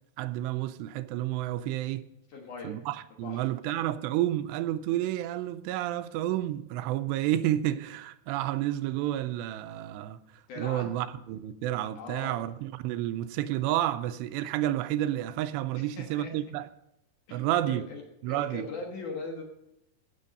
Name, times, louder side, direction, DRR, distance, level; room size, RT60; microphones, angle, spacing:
voice 1, 0.2-2.0 2.6-16.7 17.3-17.9 18.2-18.7, right 13 dB, 85° right, 2.7 m, -30 dB
voice 2, 2.3-2.7 3.2-3.4 10.5-10.9 12.0-12.4 15.7-16.5 17.3-18.0 18.3-19.4, left 3 dB, 60° left, 2.4 m, -40 dB
15.5 x 7.0 x 5.3 m
omnidirectional pair, 4.9 m